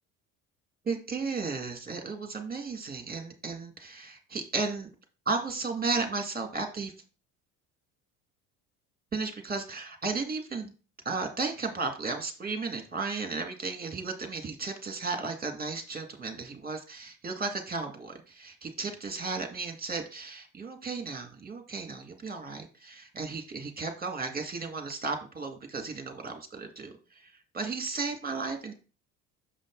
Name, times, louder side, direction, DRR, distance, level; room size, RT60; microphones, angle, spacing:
voice 1, 0.8-4.9 5.3-6.9 9.1-10.7 11.0-28.7, right 4 dB, 20° right, 4 dB, 1.9 m, -34 dB
6.9 x 5.1 x 3.8 m, 0.34 s
hypercardioid pair, 65°, 43 cm